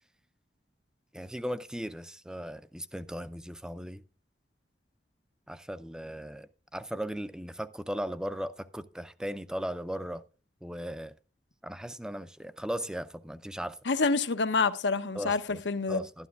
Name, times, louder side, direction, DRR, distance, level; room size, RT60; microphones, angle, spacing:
voice 1, 1.1-4.0 5.5-6.5 6.7-10.2 10.6-11.1 11.6-13.8 15.2-15.6 15.9-16.3, equal, 5° right, 0.4 m, -37 dB
voice 2, 13.8-16.0, left 4 dB, 80° left, 0.8 m, -27 dB
12.5 x 11.5 x 2.4 m
head